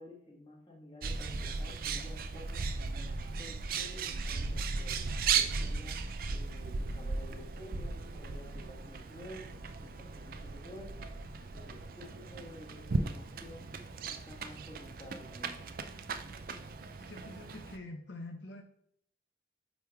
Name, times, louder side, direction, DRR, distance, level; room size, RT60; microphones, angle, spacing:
voice 1, 0.0-5.0 5.3-6.0 6.3-9.5 9.8-11.0 11.5-13.8 14.1-15.6, left 1 dB, 25° left, -2 dB, 1.5 m, -51 dB
Bird, 1.0-17.8, right 4 dB, 50° right, 0.4 m, -37 dB
voice 2, 17.1-18.6, left 2 dB, 70° left, 4 dB, 0.6 m, -45 dB
9.1 x 3.2 x 3.5 m, 0.68 s
head